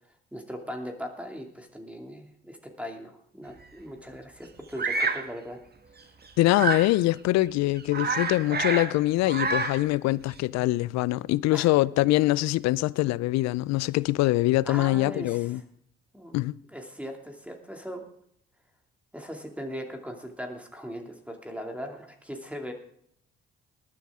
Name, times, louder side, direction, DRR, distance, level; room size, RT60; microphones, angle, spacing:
voice 1, 0.3-5.6 11.5-11.7 14.6-15.6 16.1-16.4 16.7-18.1 19.1-22.7, equal, 5° right, 2.6 m, -39 dB
Bird vocalization bird call bird song, 4.8-5.3 6.5-6.9 7.4-7.5 7.8-8.9 9.2-9.9, right 4 dB, 35° right, 1.8 m, -28 dB
voice 2, 6.4-15.6 16.3-16.5, left 18 dB, 65° left, 0.5 m, -24 dB
19.5 x 9.9 x 3.7 m
hypercardioid pair, 50°, 29 cm